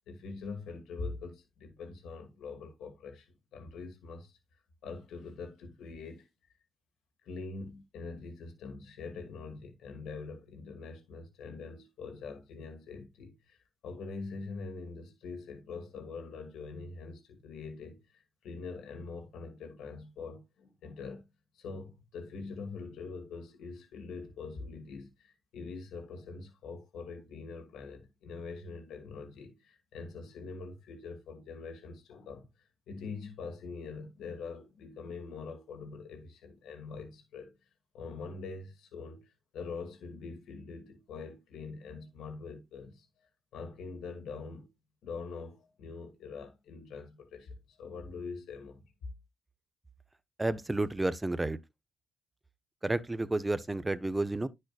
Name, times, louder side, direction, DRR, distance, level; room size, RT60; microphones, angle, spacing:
voice 1, 0.1-4.4 4.8-6.3 7.2-21.3 21.5-37.5 37.9-43.1 43.5-44.7 45.0-48.8, left 4 dB, 80° left, 1.6 m, -44 dB
voice 2, 50.4-51.6 52.8-54.5, right 2 dB, 15° right, 0.5 m, -31 dB
10.0 x 6.3 x 2.3 m
cardioid pair, 90°, 0 cm